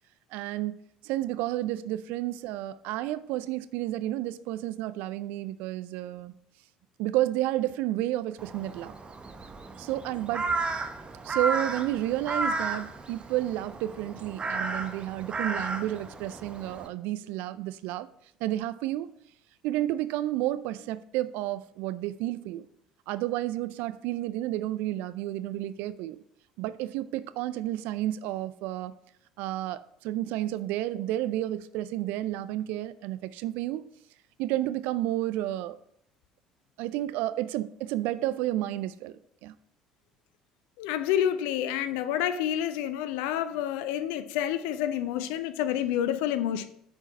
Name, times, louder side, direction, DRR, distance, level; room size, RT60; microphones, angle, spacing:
voice 1, 0.3-0.8 1.0-6.3 7.0-8.9 9.8-10.5 11.2-18.1 18.4-19.1 19.6-22.7 23.1-26.2 26.6-28.9 29.4-33.8 34.4-35.8 36.8-39.5, right 14 dB, 65° right, 0.4 m, -31 dB
Crow, 8.4-16.9, right 3 dB, 30° right, 0.9 m, -33 dB
voice 2, 40.8-46.7, left 10 dB, 65° left, 0.5 m, -28 dB
9.6 x 4.6 x 4.4 m
figure-of-eight pair, 55°, 3 cm